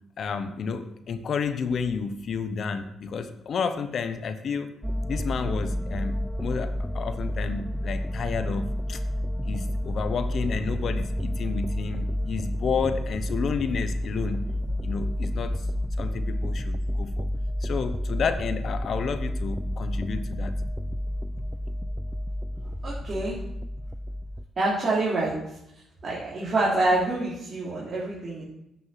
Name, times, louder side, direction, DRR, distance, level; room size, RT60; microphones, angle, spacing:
voice 1, 0.2-4.7 5.1-9.0 9.4-14.4 14.8-15.7 16.0-17.3 17.6-20.6, left 5 dB, 55° left, 10 dB, 0.9 m, -31 dB
sound 1, 4.8-24.4, equal, 5° right, 0.5 m, -30 dB
voice 2, 22.6-23.4 24.6-25.4 26.0-28.4, right 2 dB, 40° right, -6 dB, 3.2 m, -26 dB
9.6 x 6.1 x 5.8 m, 0.84 s
cardioid pair, 90°, 0 cm